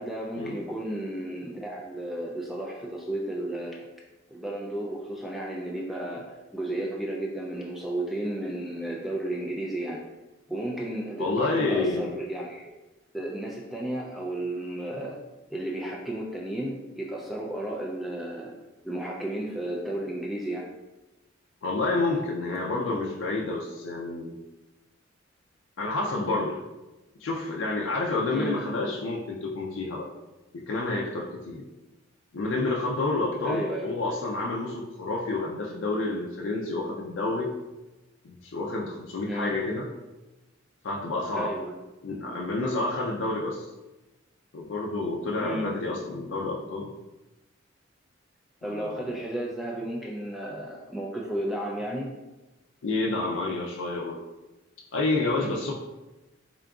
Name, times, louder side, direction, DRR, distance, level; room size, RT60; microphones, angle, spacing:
voice 1, 0.0-3.9 4.3-10.0 10.5-12.7 13.1-15.2 15.5-18.5 18.8-20.7 28.3-28.6 33.4-33.9 39.3-39.6 41.3-41.8 45.4-45.7 48.6-52.1 55.4-55.7, right 1 dB, ahead, -3 dB, 0.3 m, -33 dB
voice 2, 11.2-12.1 21.6-24.3 25.8-26.6 27.2-30.1 30.5-31.6 32.3-37.5 38.2-39.8 40.8-41.5 42.0-43.7 44.5-46.9 48.6-49.0 52.8-54.2 54.9-55.7, left 2 dB, 75° left, -2 dB, 0.4 m, -29 dB
3.7 x 3.6 x 2.3 m, 1.1 s
head